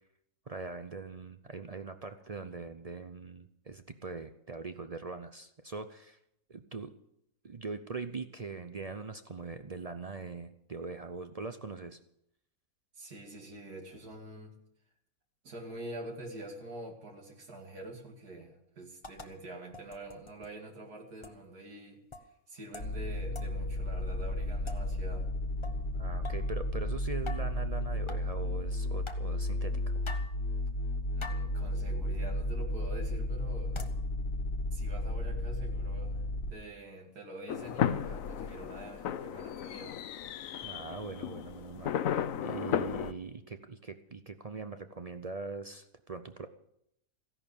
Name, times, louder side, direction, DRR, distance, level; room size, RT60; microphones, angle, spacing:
voice 1, 0.5-6.2 6.5-6.9 7.4-12.0 25.9-29.8 40.6-46.5, right 4 dB, 55° right, 9 dB, 0.4 m, -42 dB
voice 2, 12.9-14.5 15.4-22.0 22.5-25.3 31.2-33.8 34.7-36.2 36.5-40.0, right 1 dB, 75° right, 2 dB, 2.8 m, -46 dB
sound 1, 19.0-19.3 19.7-20.5 21.2-21.4 22.1-22.3 22.7-23.0 23.3-23.6 24.7-24.9 25.6-25.8 26.2-26.5 27.3-27.6 28.1-28.3 29.1-29.3 30.0-30.4 31.2-31.5 32.1-32.2 33.7-34.0, left 3 dB, 25° left, 0.8 m, -45 dB
sound 2, 22.8-36.5, left 1 dB, 40° left, 1.8 m, -33 dB
sound 3, 37.5-43.1, left 9 dB, 65° left, 1.0 m, -34 dB
15.5 x 11.0 x 7.1 m, 0.76 s
omnidirectional pair, 1.7 m